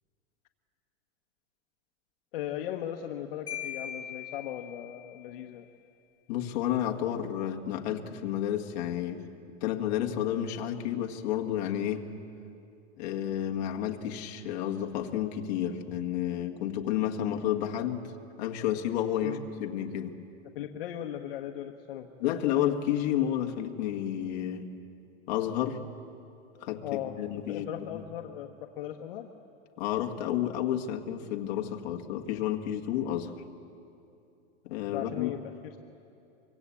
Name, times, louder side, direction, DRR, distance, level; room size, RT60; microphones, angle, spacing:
voice 1, 2.3-5.7 19.2-19.4 20.5-22.1 26.8-29.3 34.9-35.8, left 11 dB, 55° left, 3 dB, 1.2 m, -38 dB
Marimba xylophone, 3.5-5.2, left 10 dB, 10° left, 1.8 m, -40 dB
voice 2, 6.3-9.2 9.6-12.1 13.0-18.1 18.4-20.2 22.2-24.7 25.3-25.8 26.6-28.0 29.8-33.3 34.6-35.4, left 11 dB, 40° left, 2 dB, 1.6 m, -31 dB
25.0 x 23.0 x 8.5 m, 2.7 s
supercardioid pair, 180°, 33 cm